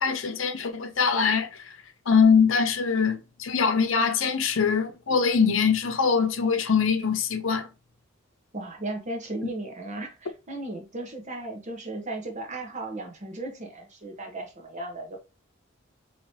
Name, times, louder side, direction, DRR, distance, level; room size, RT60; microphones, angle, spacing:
voice 1, 0.0-1.5 2.1-7.7, left 6 dB, 70° left, 0.7 m, -23 dB
voice 2, 8.5-15.2, right 2 dB, 35° right, 1.1 m, -36 dB
4.8 x 3.1 x 2.8 m
head